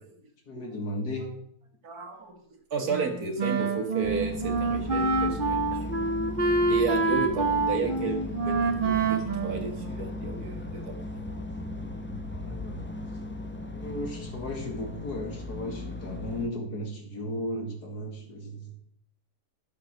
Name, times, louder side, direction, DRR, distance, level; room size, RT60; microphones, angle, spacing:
voice 1, 0.5-1.3 12.3-12.9 13.5-18.7, left 1 dB, 90° left, 2 dB, 2.8 m, -35 dB
voice 2, 1.8-6.0 6.7-11.0, right 3 dB, 70° right, 4 dB, 2.2 m, -33 dB
Wind instrument woodwind instrument, 2.9-10.4, right 3 dB, 35° right, 1.1 m, -27 dB
sound 1, 4.0-16.5, left 1 dB, 10° left, 0.8 m, -37 dB
12.0 x 6.7 x 6.4 m, 0.64 s
omnidirectional pair, 1.7 m